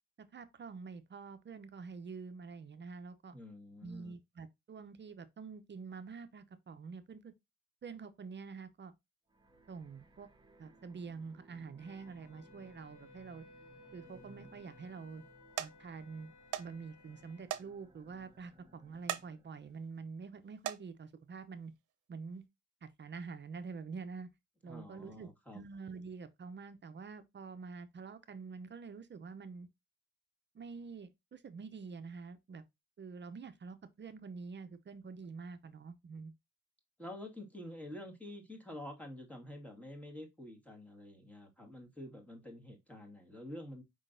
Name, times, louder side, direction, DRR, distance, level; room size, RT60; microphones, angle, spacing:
voice 1, 0.2-3.3 3.8-7.3 7.8-8.9 9.7-10.3 10.6-13.5 13.9-15.2 15.6-16.3 16.6-21.7 22.1-22.4 22.8-24.3 24.6-29.7 30.5-32.6 33.0-36.3, right 5 dB, 35° right, 0.7 m, -47 dB
voice 2, 3.3-4.1 24.6-25.6 37.0-43.8, left 1 dB, 5° left, 1.8 m, -48 dB
sound 1, 9.3-19.9, right 1 dB, 15° right, 1.3 m, -62 dB
Wind instrument woodwind instrument, 11.8-17.5, left 3 dB, 75° left, 1.1 m, -60 dB
sound 2, 14.1-14.6 15.1-15.3 15.6-15.7 16.5-16.7 17.0-17.1 17.5-17.7 18.1-18.2 18.9-19.3 19.8-20.0 20.5-20.8 21.8-21.9 22.4-22.5, right 13 dB, 85° right, 0.6 m, -39 dB
5.2 x 3.7 x 2.5 m
cardioid pair, 90°, 30 cm